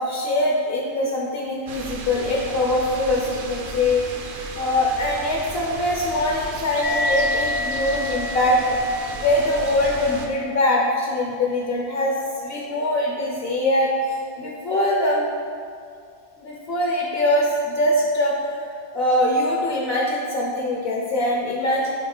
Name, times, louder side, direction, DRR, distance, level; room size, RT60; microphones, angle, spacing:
voice 1, 0.0-8.6 9.2-14.0 14.4-15.2 16.4-22.0, left 1 dB, 65° left, -2 dB, 0.9 m, -23 dB
sound 1, 1.7-10.3, right 3 dB, 60° right, 0.7 m, -35 dB
sound 2, 6.8-13.7, left 2 dB, 45° left, 0.5 m, -31 dB
4.7 x 3.9 x 5.2 m, 2.2 s
omnidirectional pair, 1.1 m